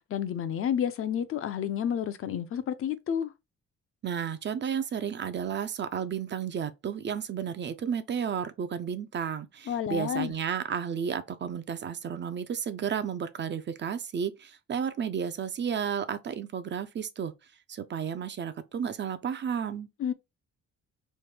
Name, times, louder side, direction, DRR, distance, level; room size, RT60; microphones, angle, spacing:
voice 1, 0.1-3.3 9.7-10.3 20.0-20.1, left 9 dB, 45° left, 0.5 m, -30 dB
voice 2, 4.0-17.3 17.7-19.9, right 7 dB, 40° right, 0.4 m, -32 dB
3.1 x 2.1 x 3.3 m
cardioid pair, 90°, 30 cm